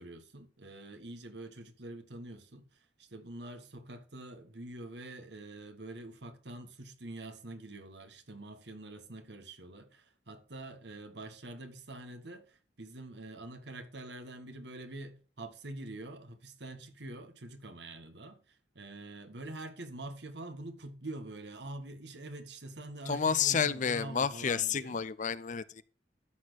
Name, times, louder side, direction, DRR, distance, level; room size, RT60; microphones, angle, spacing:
voice 1, 0.0-25.0, right 2 dB, 70° right, 1.6 m, -45 dB
voice 2, 23.0-25.8, left 6 dB, 45° left, 0.6 m, -30 dB
13.0 x 4.4 x 6.3 m
head